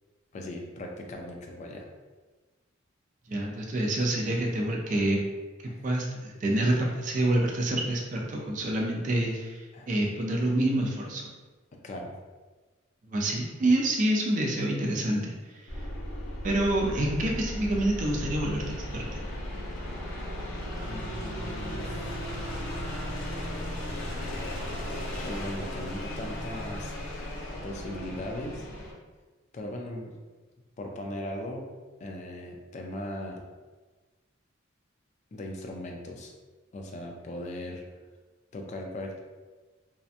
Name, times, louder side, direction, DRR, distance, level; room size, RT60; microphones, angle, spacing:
voice 1, 0.3-1.9 5.7-5.8 9.7-10.0 11.7-12.2 20.9-22.1 25.2-26.9 27.6-28.7 29.5-30.1 30.8-31.7 32.0-33.4 35.3-36.3 36.7-37.8 38.5-39.2, left 1 dB, 35° left, 1 dB, 0.3 m, -38 dB
voice 2, 3.3-5.2 5.8-11.2 13.1-15.3 15.6-15.7 16.4-18.6 18.9-19.2, right 1 dB, 40° right, -1 dB, 0.4 m, -27 dB
sound 1, 15.7-28.9, equal, 90° left, 0.6 m, -36 dB
2.7 x 2.1 x 2.4 m, 1.3 s
head